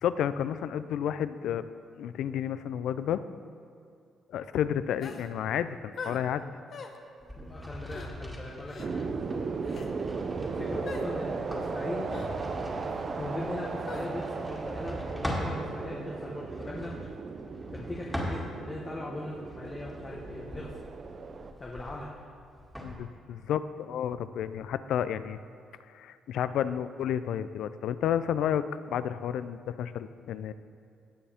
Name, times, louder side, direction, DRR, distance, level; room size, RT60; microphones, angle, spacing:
voice 1, 0.0-1.6 2.0-3.2 4.3-6.4 22.8-25.4 25.9-30.5, left 9 dB, 80° left, 13 dB, 0.4 m, -31 dB
sound 1, 5.0-5.3 6.0-6.2 6.7-7.0 7.9-8.1 8.7-8.9 9.6-9.9 10.9-11.1 12.1-12.3 13.9-14.1, left 5 dB, 55° left, 0.9 m, -41 dB
sound 2, 7.2-15.6 16.4-18.8 19.3-22.9, equal, ahead, 2.1 m, -41 dB
voice 2, 7.4-9.0 10.4-12.2 13.2-17.0 17.7-20.8 21.6-22.1, left 2 dB, 25° left, -3 dB, 1.2 m, -40 dB
sound 3, 8.8-21.5, right 4 dB, 45° right, 0.6 m, -36 dB
17.5 x 7.1 x 3.5 m, 2.4 s
cardioid pair, 90°, 0 cm